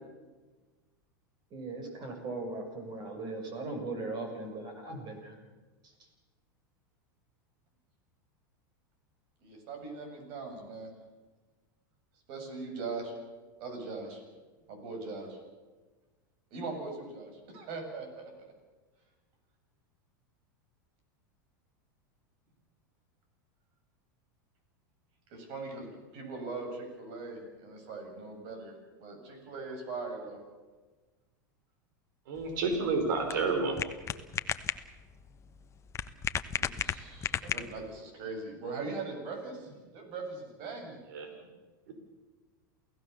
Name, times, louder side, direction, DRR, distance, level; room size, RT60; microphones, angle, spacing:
voice 1, 1.5-5.3, right 2 dB, 40° right, 4 dB, 6.8 m, -38 dB
voice 2, 9.4-10.9 12.3-13.1 13.6-14.2 14.7-15.4 16.5-18.5 25.3-25.9 26.1-28.7 29.0-30.4 36.5-41.0, right 3 dB, 55° right, 4 dB, 7.7 m, -40 dB
voice 3, 32.3-33.8 41.1-41.3 41.9-42.0, right 4 dB, 70° right, 5 dB, 4.9 m, -30 dB
sound 1, 32.4-38.0, left 7 dB, 25° left, 1.1 m, -36 dB
28.5 x 16.5 x 7.0 m, 1.3 s
hypercardioid pair, 105°, 11 cm